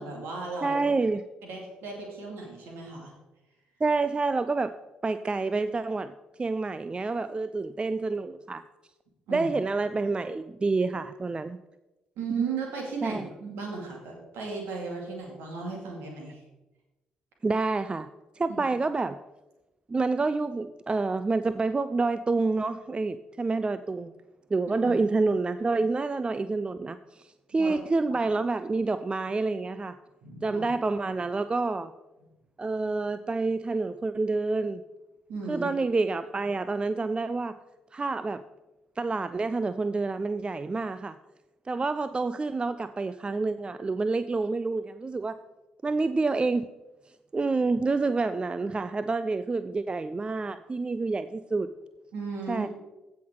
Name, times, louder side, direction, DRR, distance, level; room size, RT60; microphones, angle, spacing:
voice 1, 0.0-0.8 1.4-3.1 9.3-9.5 12.2-16.4 18.5-18.6 24.8-24.9 27.5-27.8 30.2-30.6 35.3-35.7 52.1-52.7, right 4 dB, 65° right, 0 dB, 2.7 m, -36 dB
voice 2, 0.6-1.2 3.8-4.8 5.0-6.1 6.4-8.6 9.3-11.6 13.0-13.3 17.4-18.1 18.4-19.2 19.9-24.1 24.5-29.9 30.4-31.9 32.6-34.8 35.5-37.6 37.9-38.4 39.0-41.2 41.7-45.4 45.8-46.7 47.3-51.7 52.5-52.7, right 3 dB, 25° right, 13 dB, 0.4 m, -28 dB
15.5 x 5.9 x 3.9 m, 1.0 s
figure-of-eight pair, 45°, 4 cm